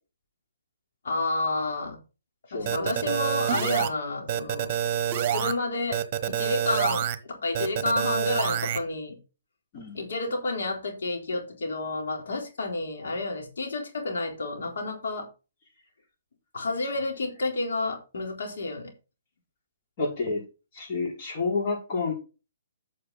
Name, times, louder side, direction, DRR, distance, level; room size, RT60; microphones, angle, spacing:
voice 1, 1.0-2.0 2.5-4.8 5.3-6.0 6.3-9.2 9.9-15.3 16.5-18.9, left 2 dB, 70° left, 4.1 m, -30 dB
voice 2, 2.5-3.1 9.7-10.0 20.0-20.4 20.7-22.1, left 3 dB, 40° left, 5.6 m, -30 dB
sound 1, 2.7-3.9 4.3-5.5 5.9-7.2 7.5-8.8, right 10 dB, 40° right, 1.2 m, -27 dB
9.5 x 6.6 x 4.2 m
hypercardioid pair, 145°, 0 cm